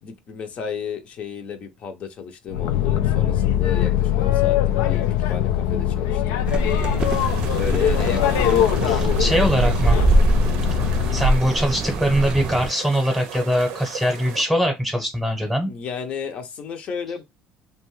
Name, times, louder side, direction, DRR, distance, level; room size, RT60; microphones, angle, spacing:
voice 1, 0.0-6.5 7.5-10.4 15.6-17.2, left 6 dB, 50° left, 0.6 m, -33 dB
Boat Water vehicle, 2.5-11.3, left 11 dB, 90° left, 0.3 m, -22 dB
sound 1, 6.5-12.7, right 2 dB, 35° right, 0.4 m, -23 dB
sound 2, 7.0-14.4, right 7 dB, 90° right, 0.6 m, -37 dB
voice 2, 8.9-10.0 11.1-15.7, equal, 5° right, 0.9 m, -22 dB
2.5 x 2.2 x 3.1 m
cardioid pair, 110°, 3 cm